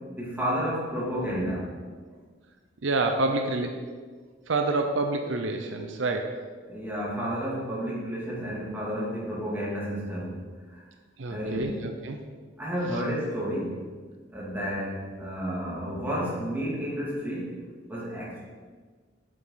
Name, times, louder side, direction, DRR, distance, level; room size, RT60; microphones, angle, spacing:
voice 1, 0.2-1.7 6.7-10.4 10.7-10.8 11.3-11.7 12.6-13.8 14.3-17.6 17.9-18.4, equal, 10° right, -7 dB, 2.5 m, -31 dB
voice 2, 2.8-3.7 4.5-6.4 11.2-12.2, right 2 dB, 75° right, 5 dB, 0.7 m, -27 dB
8.3 x 7.5 x 3.9 m, 1.5 s
head